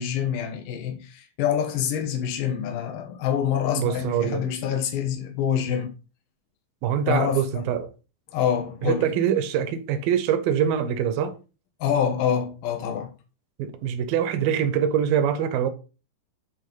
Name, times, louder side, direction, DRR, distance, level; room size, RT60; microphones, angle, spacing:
voice 1, 0.0-5.9 7.1-7.6 8.3-9.1 11.8-13.1, left 9 dB, 70° left, 2.8 m, -26 dB
voice 2, 3.8-4.4 6.8-7.9 8.8-11.3 13.6-15.7, right 9 dB, 75° right, 2.5 m, -24 dB
8.4 x 3.5 x 5.2 m
omnidirectional pair, 4.3 m